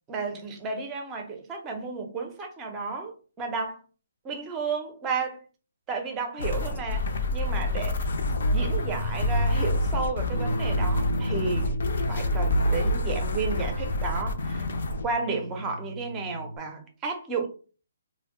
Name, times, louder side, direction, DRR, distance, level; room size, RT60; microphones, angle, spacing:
voice 1, 0.1-3.8 4.2-5.4 5.9-8.1 8.4-11.7 12.1-14.6 15.0-17.5, right 4 dB, 15° right, 0.5 m, -32 dB
sound 1, 6.4-15.1, left 1 dB, 65° left, 0.5 m, -27 dB
Bass guitar, 10.3-16.6, right 1 dB, 70° right, 0.4 m, -34 dB
2.6 x 2.1 x 3.6 m
hypercardioid pair, 170°, 0 cm